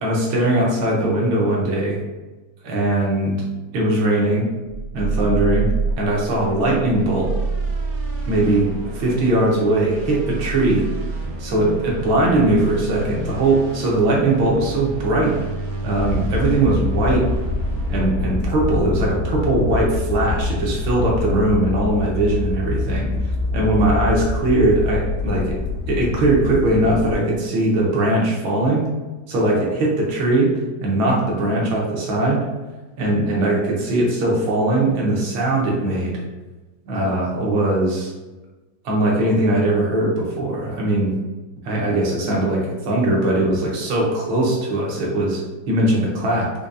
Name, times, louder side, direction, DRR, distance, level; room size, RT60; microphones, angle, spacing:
voice 1, 0.0-2.0 2.6-3.4 3.7-4.5 4.9-5.7 6.0-7.3 8.3-8.7 8.9-10.8 11.4-15.3 15.8-17.3 17.9-23.1 23.5-25.5 25.9-28.8 29.3-30.5 30.8-32.4 33.0-36.1 36.9-38.1 38.9-41.1 41.7-46.7, right 2 dB, 80° right, -3 dB, 1.7 m, -20 dB
sound 1, 4.6-19.2, right 3 dB, 65° right, 0.9 m, -28 dB
sound 2, 16.0-27.1, left 3 dB, 85° left, 1.6 m, -25 dB
5.0 x 2.3 x 2.5 m, 1.2 s
omnidirectional pair, 2.1 m